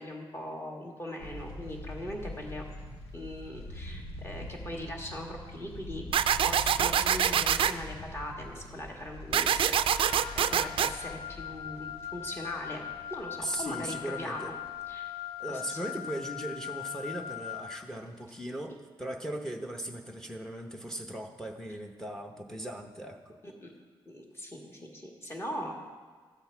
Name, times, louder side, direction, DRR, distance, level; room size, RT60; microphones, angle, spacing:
voice 1, 0.0-2.6 3.1-6.0 6.4-10.2 10.5-12.9 13.1-14.5 14.9-15.1 15.5-15.8 23.4-23.7 24.1-25.7, left 1 dB, 25° left, 0 dB, 1.8 m, -40 dB
sound 1, 1.2-15.2 15.6-15.7 15.9-16.2 17.1-17.5 17.9-18.0 18.3-18.4, left 1 dB, 85° left, 2.0 m, -44 dB
sound 2, 6.1-7.7 9.3-10.9, right 9 dB, 65° right, 0.4 m, -25 dB
Wind instrument woodwind instrument, 10.1-17.8, left 11 dB, 50° left, 0.5 m, -40 dB
voice 2, 13.4-14.5 15.4-18.7 19.0-23.4, right 1 dB, 5° left, 4 dB, 0.8 m, -38 dB
13.0 x 7.9 x 4.6 m, 1.5 s
cardioid pair, 120°, 10 cm